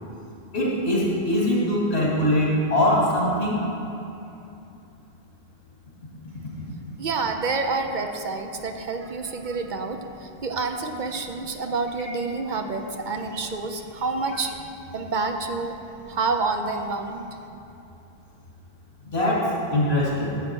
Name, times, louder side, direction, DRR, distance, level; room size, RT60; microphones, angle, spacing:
voice 1, 0.5-3.6 12.0-12.1 19.1-20.3, left 1 dB, 90° left, -6 dB, 2.6 m, -22 dB
voice 2, 7.0-14.6 14.9-15.8 16.1-17.3, right 4 dB, 55° right, 5 dB, 0.7 m, -28 dB
10.5 x 7.4 x 4.5 m, 2.8 s
omnidirectional pair, 1.0 m